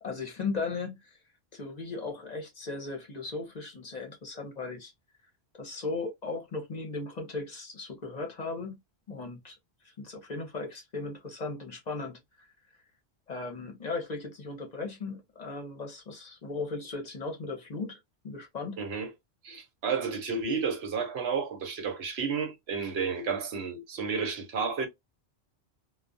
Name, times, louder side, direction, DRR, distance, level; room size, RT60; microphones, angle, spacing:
voice 1, 0.0-1.2 1.5-4.9 5.6-8.8 9.1-9.6 9.8-12.2 13.3-18.8, left 3 dB, 45° left, 0.7 m, -37 dB
voice 2, 18.8-19.1 19.4-24.9, right 5 dB, 80° right, 1.0 m, -31 dB
2.3 x 2.2 x 2.5 m
omnidirectional pair, 1.1 m